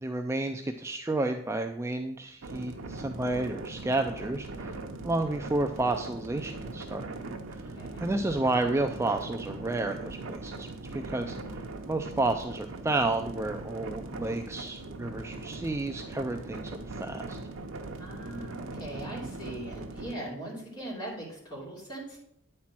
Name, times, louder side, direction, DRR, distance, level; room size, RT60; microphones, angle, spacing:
voice 1, 0.0-4.8 5.0-7.1 8.0-11.4 11.9-17.4, right 2 dB, 15° right, 5 dB, 0.3 m, -31 dB
sound 1, 2.4-20.1, right 2 dB, 75° right, 0.8 m, -40 dB
voice 2, 7.7-8.1 18.0-22.2, right 1 dB, 20° left, -5 dB, 3.0 m, -40 dB
9.3 x 4.4 x 6.0 m, 0.74 s
head